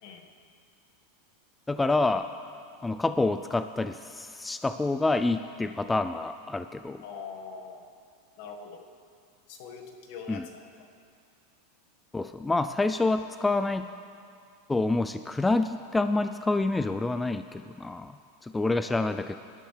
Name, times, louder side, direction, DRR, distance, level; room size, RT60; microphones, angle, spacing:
voice 1, 1.7-2.3 2.8-7.0 10.3-10.5 12.1-13.9 14.7-18.2 18.4-19.4, left 2 dB, 10° left, 10 dB, 0.3 m, -27 dB
voice 2, 7.0-7.9 8.4-8.8 9.5-10.8 18.9-19.3, left 5 dB, 60° left, 2 dB, 1.6 m, -43 dB
19.5 x 12.0 x 3.4 m, 2.3 s
supercardioid pair, 125°, 0 cm